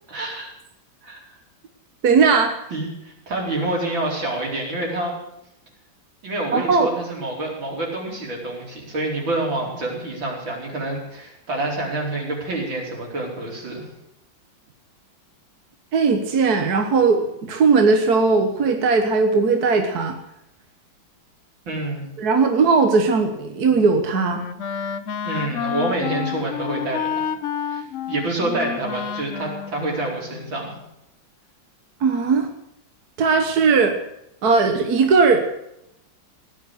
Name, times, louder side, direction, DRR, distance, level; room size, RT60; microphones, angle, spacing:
voice 1, 0.1-0.5 1.0-1.2 2.7-5.2 6.2-13.8 21.7-22.0 25.2-27.3 27.6-30.7, right 2 dB, 75° right, -1 dB, 5.3 m, -27 dB
voice 2, 2.0-2.6 6.5-6.9 15.9-20.2 22.2-24.4 32.0-32.5 33.2-34.0 34.4-35.5, right 4 dB, 55° right, 5 dB, 1.7 m, -18 dB
Wind instrument woodwind instrument, 23.6-30.8, left 8 dB, 60° left, 0.8 m, -30 dB
17.0 x 10.5 x 8.0 m, 0.82 s
omnidirectional pair, 2.1 m